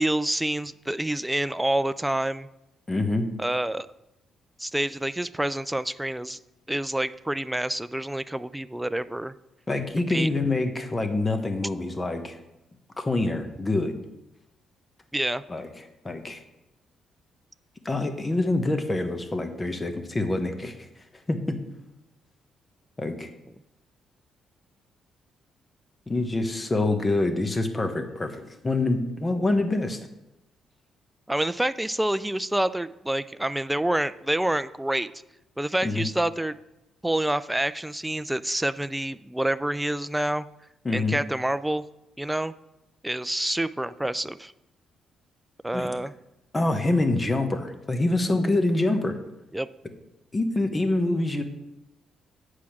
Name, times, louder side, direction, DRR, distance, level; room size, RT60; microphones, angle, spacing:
voice 1, 0.0-2.5 3.4-3.9 4.6-6.4 6.7-9.3 10.1-10.3 15.1-15.4 31.3-35.1 35.6-36.6 37.0-40.5 40.9-41.8 42.2-42.5 43.0-44.5 45.6-46.1 49.5-49.7, right 1 dB, 5° right, 13 dB, 0.3 m, -27 dB
voice 2, 2.9-3.3 9.7-12.4 13.0-14.0 15.5-15.7 16.0-16.4 17.8-20.8 21.3-21.6 23.0-23.3 26.1-30.0 35.8-36.0 40.8-41.2 45.7-45.9 46.5-49.2 50.3-51.4, left 2 dB, 25° left, 7 dB, 1.0 m, -26 dB
8.4 x 4.8 x 5.9 m, 0.92 s
cardioid pair, 90°, 0 cm